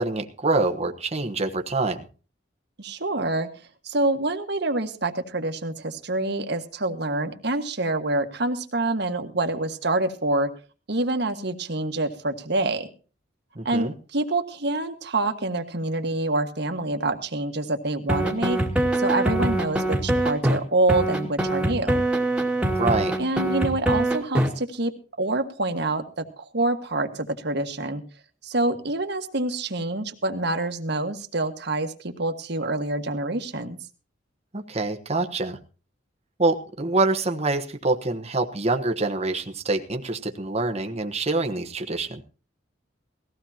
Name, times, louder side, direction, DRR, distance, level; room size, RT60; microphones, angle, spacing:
voice 1, 0.0-2.0 13.6-13.9 22.6-23.2 34.5-35.6 36.4-42.2, right 2 dB, 35° right, 4 dB, 1.2 m, -25 dB
voice 2, 2.8-3.5 3.8-10.5 10.9-12.9 13.6-18.6 18.9-22.0 23.2-24.9 25.2-28.0 28.4-33.8, right 2 dB, 60° right, 6 dB, 1.7 m, -26 dB
sound 1, 18.1-20.6 20.9-24.5, right 1 dB, 5° right, 2.1 m, -23 dB
19.5 x 15.5 x 2.9 m, 0.36 s
head